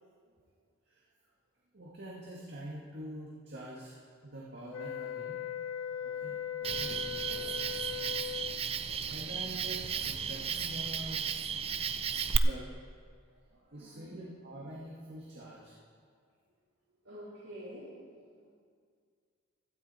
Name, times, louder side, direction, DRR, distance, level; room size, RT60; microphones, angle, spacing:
voice 1, 1.7-5.4 6.0-6.4 6.7-7.4 8.9-11.2 12.4-12.7 13.7-15.7, right 1 dB, 55° right, -5 dB, 1.9 m, -45 dB
sound 1, 4.7-8.6, left 9 dB, 85° left, 0.6 m, -39 dB
Cricket, 6.6-12.4, right 6 dB, 30° right, 0.4 m, -34 dB
voice 2, 7.1-7.5 13.3-14.2 17.0-18.0 18.3-18.5, equal, 80° right, -10 dB, 4.0 m, -50 dB
16.5 x 12.5 x 4.3 m, 2.1 s
head